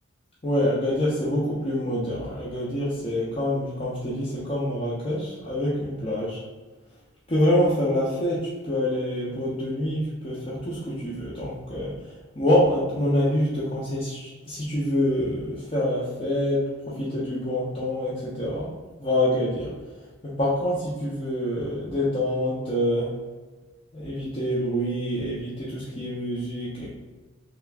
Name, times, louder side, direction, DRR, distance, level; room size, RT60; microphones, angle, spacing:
voice 1, 0.4-6.4 7.3-11.9 12.4-18.7 19.0-19.7 20.2-23.1 23.9-26.9, left 1 dB, 30° left, -8 dB, 0.7 m, -26 dB
3.4 x 2.8 x 3.4 m, 1.3 s
head